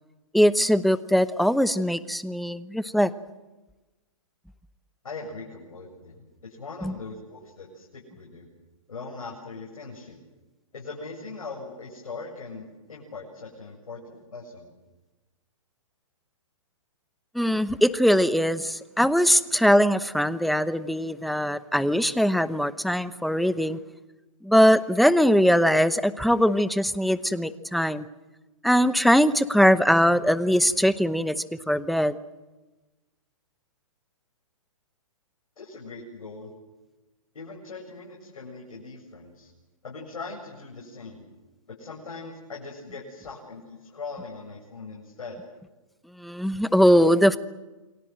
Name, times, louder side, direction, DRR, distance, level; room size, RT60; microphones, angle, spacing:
voice 1, 0.3-3.1 6.8-6.9 17.3-23.8 24.4-28.1 28.6-31.4 31.7-32.1 46.2-47.4, equal, ahead, 14 dB, 0.8 m, -21 dB
voice 2, 5.0-8.5 8.9-10.2 10.7-14.7 35.6-36.5 37.3-39.5 39.8-41.2 41.8-45.4, left 3 dB, 85° left, -2 dB, 7.7 m, -40 dB
28.5 x 23.0 x 7.7 m, 1.1 s
hypercardioid pair, 140°, 18 cm